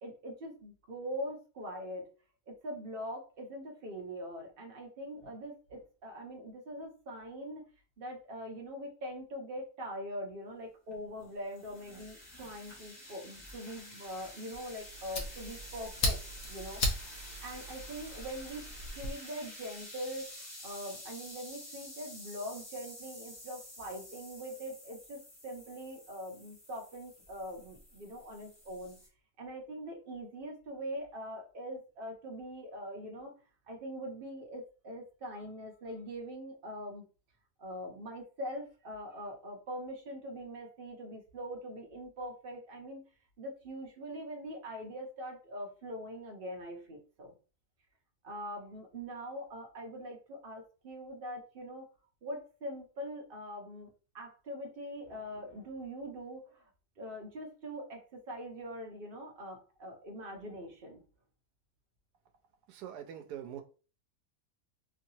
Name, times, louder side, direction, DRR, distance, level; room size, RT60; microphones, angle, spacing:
voice 1, 0.0-2.1 2.5-7.7 8.0-16.2 16.5-16.8 17.4-18.6 19.0-29.0 29.4-33.3 33.7-37.1 37.6-43.0 43.4-47.4 48.2-51.9 52.2-56.6 57.0-61.0, equal, 50° right, 0.7 m, -43 dB
sound 1, 10.9-29.1, left 1 dB, 15° left, 1.2 m, -50 dB
Fire, 14.5-19.1, left 1 dB, 50° left, 0.9 m, -37 dB
voice 2, 62.7-63.6, right 10 dB, 80° right, 1.1 m, -43 dB
3.1 x 2.8 x 2.7 m
omnidirectional pair, 1.7 m